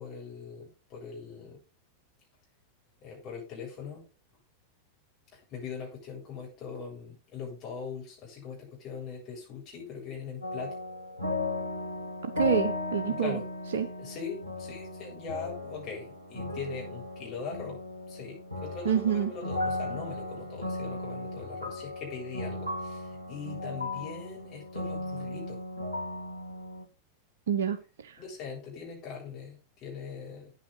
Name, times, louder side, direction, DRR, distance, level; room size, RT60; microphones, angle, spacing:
voice 1, 0.0-1.6 3.0-4.0 5.3-10.8 13.1-13.5 14.0-17.8 18.1-25.6 28.2-30.5, left 5 dB, 35° left, -2 dB, 7.8 m, -41 dB
sound 1, 10.4-26.9, left 2 dB, 90° left, 2.0 m, -36 dB
voice 2, 12.4-13.4 13.7-13.9 18.8-19.3 27.5-27.8 28.0-28.1, right 8 dB, 60° right, 9 dB, 0.9 m, -27 dB
9.2 x 8.7 x 5.5 m, 0.33 s
figure-of-eight pair, 90°, 0 cm